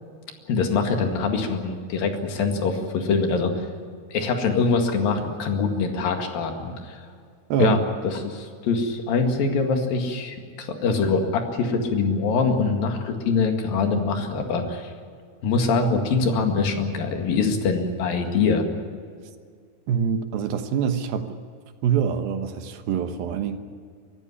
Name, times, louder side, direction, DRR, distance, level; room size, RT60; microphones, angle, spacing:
voice 1, 0.5-3.7 4.1-7.0 7.6-14.9 15.4-18.6, left 4 dB, 65° left, 4 dB, 3.6 m, -24 dB
voice 2, 7.5-7.8 19.9-21.4 21.8-23.6, right 7 dB, 70° right, 8 dB, 2.8 m, -25 dB
24.5 x 14.0 x 10.0 m, 2.1 s
omnidirectional pair, 4.7 m